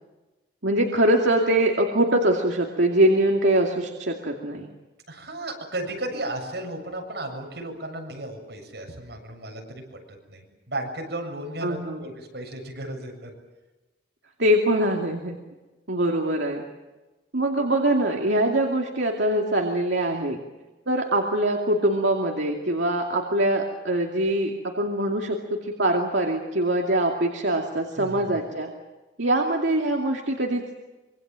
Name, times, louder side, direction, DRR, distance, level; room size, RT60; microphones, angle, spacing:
voice 1, 0.6-4.7 11.6-12.0 14.4-15.4 15.9-16.6 17.3-20.4 20.9-24.5 24.8-28.7 29.2-30.6, right 1 dB, 80° right, 1 dB, 2.5 m, -23 dB
voice 2, 5.1-10.0 10.3-13.3 28.0-28.4, right 1 dB, 65° right, 1 dB, 7.6 m, -34 dB
26.0 x 24.0 x 7.6 m, 1.1 s
head